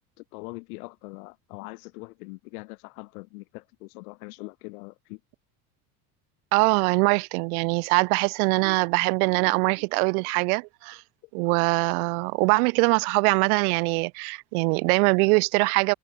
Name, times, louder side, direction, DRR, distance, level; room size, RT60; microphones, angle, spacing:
voice 1, 0.2-5.2, left 28 dB, 90° left, 3.0 m, -42 dB
voice 2, 6.5-11.0 11.3-15.9, right 31 dB, 85° right, 1.1 m, -23 dB
cardioid pair, 165°, 42 cm